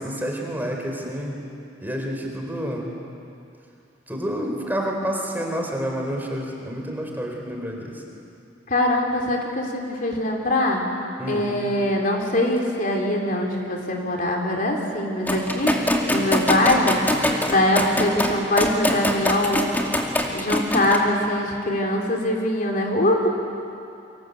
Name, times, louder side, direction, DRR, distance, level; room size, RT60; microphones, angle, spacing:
voice 1, 0.0-1.4 1.8-2.9 4.1-8.0 11.2-11.5, equal, 10° right, 1 dB, 4.2 m, -29 dB
voice 2, 8.7-10.8 11.3-15.7 16.1-19.7 20.3-23.3, left 1 dB, 50° left, 1 dB, 3.5 m, -22 dB
sound 1, 15.3-21.0, left 1 dB, 10° left, 2.4 m, -23 dB
29.5 x 25.0 x 8.1 m, 2.6 s
head